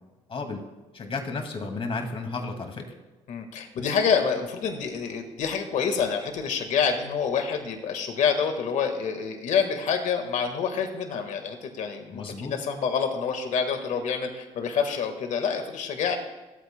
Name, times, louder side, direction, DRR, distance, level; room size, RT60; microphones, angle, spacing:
voice 1, 0.3-0.6 0.9-2.9 12.1-12.5, left 3 dB, 45° left, 4 dB, 2.1 m, -33 dB
voice 2, 3.3-16.2, left 6 dB, 70° left, 6 dB, 1.5 m, -27 dB
25.5 x 8.7 x 2.2 m, 1.1 s
cardioid pair, 80°, 13 cm